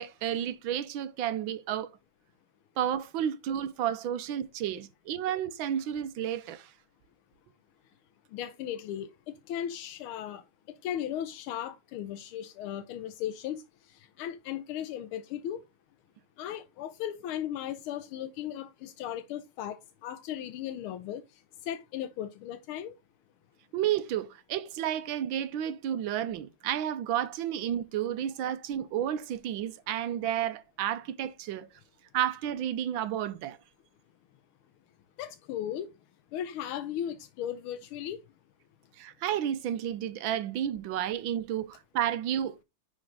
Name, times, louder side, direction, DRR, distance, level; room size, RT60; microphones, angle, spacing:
voice 1, 0.0-1.9 2.8-6.7 23.7-31.7 32.1-33.6 39.0-42.6, right 10 dB, 70° right, 1.5 m, -31 dB
voice 2, 8.3-10.4 10.8-15.6 16.4-22.9 35.2-35.9 36.3-38.2, left 10 dB, 90° left, 1.5 m, -37 dB
9.8 x 4.4 x 3.8 m
omnidirectional pair, 2.3 m